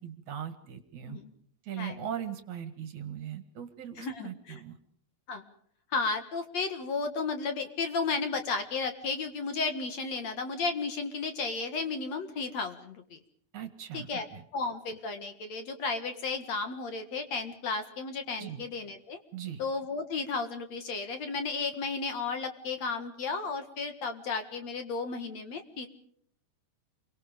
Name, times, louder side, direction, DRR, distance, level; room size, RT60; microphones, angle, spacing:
voice 1, 0.0-1.2 1.6-4.7 13.5-14.4 18.4-18.6 19.3-19.6, right 9 dB, 60° right, 10 dB, 2.8 m, -39 dB
voice 2, 4.0-4.6 5.3-5.5 5.9-13.2 13.9-14.2 14.5-19.2 19.6-25.9, left 4 dB, 55° left, 8 dB, 2.6 m, -33 dB
29.0 x 24.0 x 5.2 m, 0.64 s
omnidirectional pair, 4.2 m